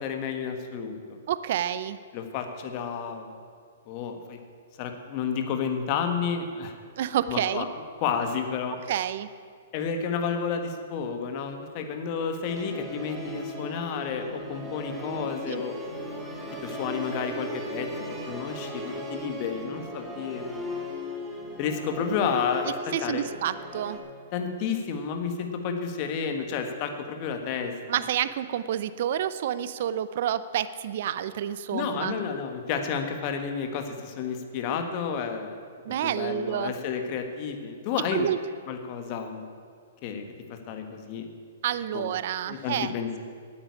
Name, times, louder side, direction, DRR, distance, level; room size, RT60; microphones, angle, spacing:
voice 1, 0.0-1.2 2.1-3.3 3.9-4.4 4.8-6.8 7.3-7.7 8.0-8.7 9.7-15.8 16.6-17.9 18.3-20.6 21.6-22.7 23.0-23.2 24.3-28.0 31.7-35.5 36.0-38.3 38.7-39.4 40.0-40.2 40.5-41.3 41.9-42.0 42.5-43.2, left 6 dB, 40° left, 5 dB, 1.5 m, -31 dB
voice 2, 1.3-2.0 7.0-7.7 8.9-9.3 15.5-15.6 22.9-24.0 27.9-32.1 35.8-36.7 38.1-38.4 41.6-42.9, right 10 dB, 60° right, 14 dB, 0.6 m, -29 dB
Musical instrument, 12.4-24.0, left 1 dB, 5° right, 2.2 m, -37 dB
9.0 x 8.9 x 9.8 m, 2.1 s
hypercardioid pair, 135°, 0 cm